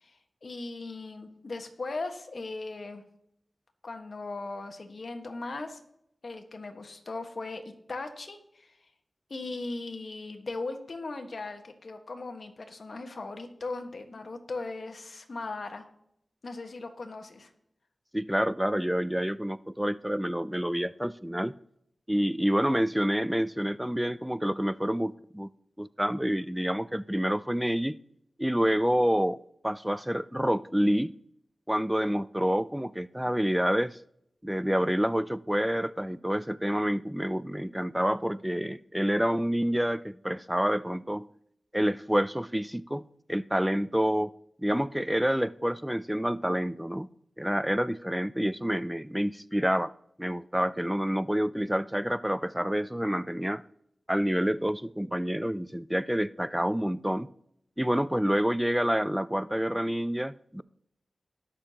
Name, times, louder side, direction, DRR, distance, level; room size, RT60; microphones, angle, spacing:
voice 1, 0.0-3.0 3.8-5.8 6.2-8.9 9.3-15.8 16.4-17.5, left 3 dB, 65° left, 1.5 m, -38 dB
voice 2, 18.1-21.6 22.1-25.5 25.8-28.0 28.4-31.1 31.7-34.0 34.4-41.3 41.7-44.3 44.6-47.1 47.4-49.9 50.2-53.6 54.1-57.3 57.8-60.6, equal, 5° right, 0.3 m, -28 dB
19.0 x 6.6 x 2.9 m
cardioid pair, 55°, 0 cm